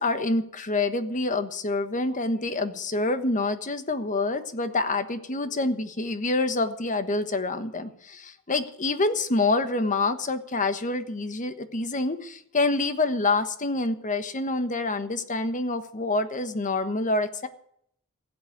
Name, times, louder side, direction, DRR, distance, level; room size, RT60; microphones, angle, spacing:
voice 1, 0.0-17.5, left 2 dB, 35° left, 10 dB, 1.3 m, -27 dB
15.5 x 8.7 x 9.3 m, 0.68 s
head